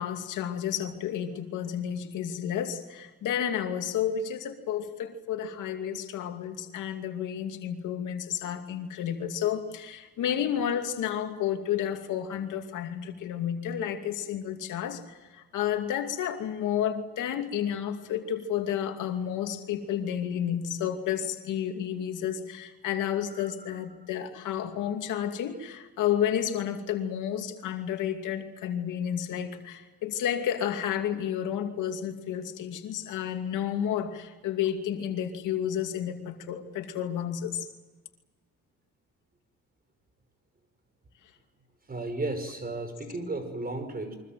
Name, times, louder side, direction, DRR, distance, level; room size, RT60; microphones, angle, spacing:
voice 1, 0.0-37.7, left 9 dB, 85° left, 5 dB, 2.6 m, -31 dB
voice 2, 23.3-23.7 41.9-44.1, right 2 dB, 30° right, 9 dB, 5.9 m, -34 dB
29.0 x 24.0 x 7.7 m, 1.2 s
cardioid pair, 90°, 30 cm